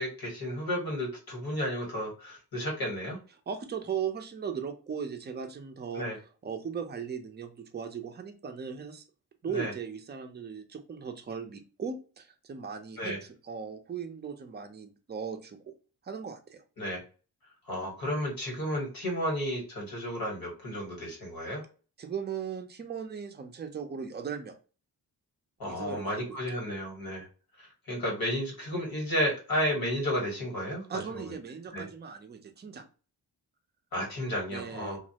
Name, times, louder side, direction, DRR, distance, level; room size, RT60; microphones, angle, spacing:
voice 1, 0.0-3.2 6.0-6.2 9.5-9.7 13.0-13.2 16.8-17.0 17.7-21.6 25.6-27.3 27.9-30.8 31.1-31.2 31.7-31.8 33.9-35.0, equal, 65° left, -1 dB, 1.5 m, -32 dB
voice 2, 3.5-9.0 9.4-15.7 16.0-16.6 22.0-24.6 25.7-26.4 30.9-32.8 34.5-35.0, right 7 dB, 25° right, 6 dB, 0.5 m, -38 dB
2.4 x 2.0 x 2.8 m, 0.35 s
cardioid pair, 90°, 38 cm